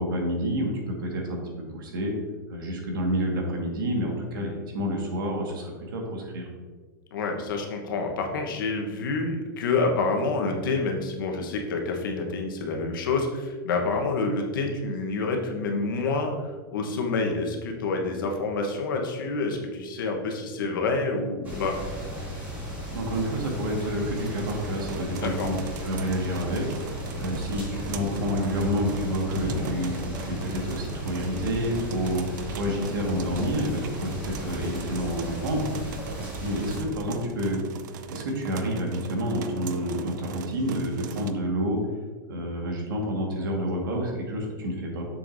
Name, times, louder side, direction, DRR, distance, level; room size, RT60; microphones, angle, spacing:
voice 1, 0.0-1.4 1.7-2.1 2.5-6.5 22.9-35.7 36.4-37.6 38.1-41.8 42.3-45.0, equal, 80° right, 0 dB, 1.7 m, -29 dB
voice 2, 7.1-21.8 25.2-25.5, left 3 dB, 80° left, 2 dB, 1.2 m, -28 dB
sound 1, 21.4-36.8, equal, 15° right, 1.9 m, -35 dB
sound 2, 24.1-41.3, right 7 dB, 60° right, 0.5 m, -41 dB
6.7 x 6.2 x 2.7 m, 1.4 s
supercardioid pair, 170°, 11 cm